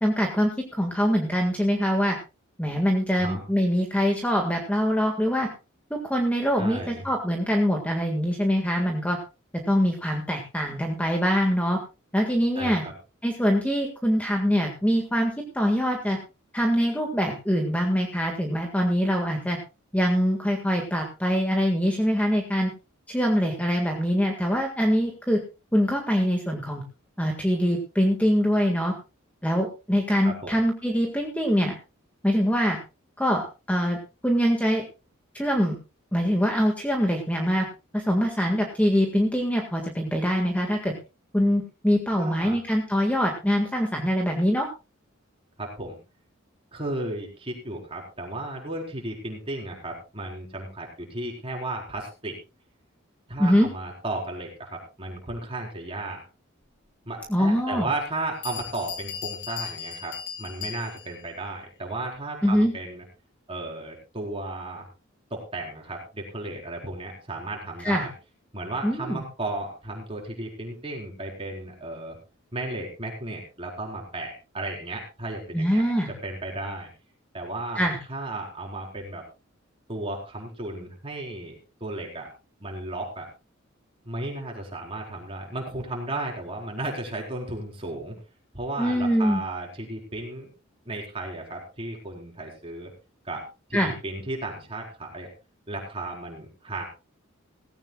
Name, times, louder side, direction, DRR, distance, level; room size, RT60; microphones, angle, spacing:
voice 1, 0.0-2.2 2.6-5.5 5.9-9.2 9.7-11.8 12.1-12.8 13.2-16.2 16.5-19.6 19.9-22.7 23.1-25.4 25.7-26.8 27.2-28.9 29.4-31.8 32.2-32.8 33.2-34.0 34.2-34.8 35.3-35.8 36.1-37.7 37.9-40.9 41.3-44.7 53.4-53.7 57.3-57.9 62.4-62.7 67.8-68.1 68.8-69.2 75.5-76.1 77.8-78.0 88.8-89.4 93.7-93.9, equal, 5° left, 2 dB, 1.8 m, -24 dB
voice 2, 6.6-7.1 12.5-12.9 30.2-30.6 42.1-42.6 45.6-46.0 46.7-52.4 53.3-56.2 57.1-63.0 63.5-64.8 65.3-68.1 68.5-72.2 72.5-75.8 76.2-76.9 77.3-79.2 79.9-82.3 82.6-83.3 84.1-88.2 88.5-90.5 90.9-92.9 93.2-93.4 93.7-95.3 95.7-96.8, right 2 dB, 25° right, 0 dB, 4.4 m, -34 dB
Bell, 57.3-57.4 58.1-58.2 58.4-61.2, left 8 dB, 55° left, 2.0 m, -37 dB
17.5 x 16.0 x 2.3 m, 0.29 s
head